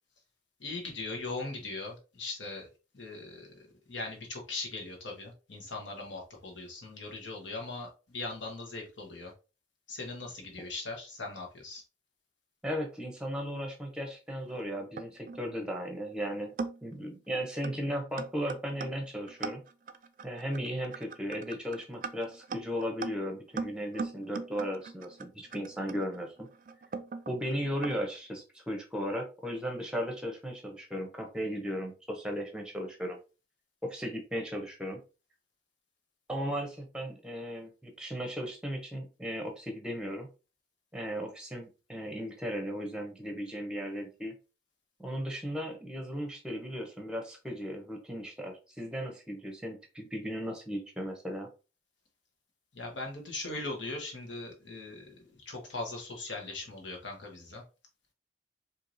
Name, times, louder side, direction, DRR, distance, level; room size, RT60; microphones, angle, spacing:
voice 1, 0.6-2.7 2.9-9.3 9.9-11.8 52.7-57.6, left 3 dB, 90° left, 0 dB, 1.3 m, -40 dB
voice 2, 12.6-16.5 16.8-19.6 20.2-26.5 27.3-33.2 33.8-35.0 36.3-40.3 40.9-44.3 45.0-51.5, equal, 5° right, 3 dB, 0.7 m, -36 dB
sound 1, 14.5-15.4 16.1-16.2 16.6-17.0 17.6-17.8 18.2-28.0, right 4 dB, 45° right, 0.3 m, -40 dB
4.6 x 2.8 x 2.6 m, 0.32 s
head